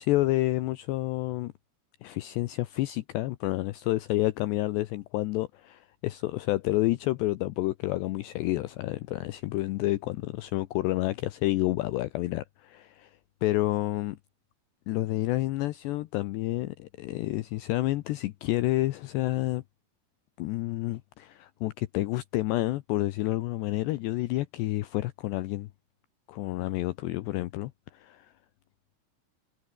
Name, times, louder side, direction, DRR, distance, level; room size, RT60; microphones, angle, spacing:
voice 1, 0.0-1.5 2.0-13.1 13.4-14.2 14.9-19.6 20.4-25.7 26.3-28.3, left 17 dB, 80° left, 2.5 m, -29 dB
omnidirectional pair, 5.9 m